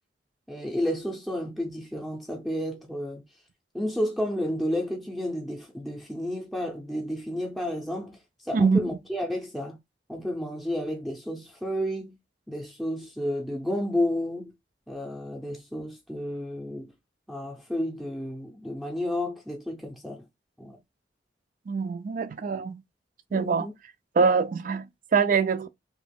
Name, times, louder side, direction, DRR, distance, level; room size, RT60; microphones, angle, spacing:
voice 1, 0.5-3.2 3.7-8.2 8.5-9.8 10.1-12.1 12.5-14.5 14.9-16.9 17.3-20.2 20.6-20.8 23.3-23.7, left 1 dB, ahead, 0.6 m, -31 dB
voice 2, 21.7-22.8 23.3-23.7 24.2-25.7, right 5 dB, 50° right, 0.4 m, -24 dB
2.9 x 2.3 x 3.4 m
head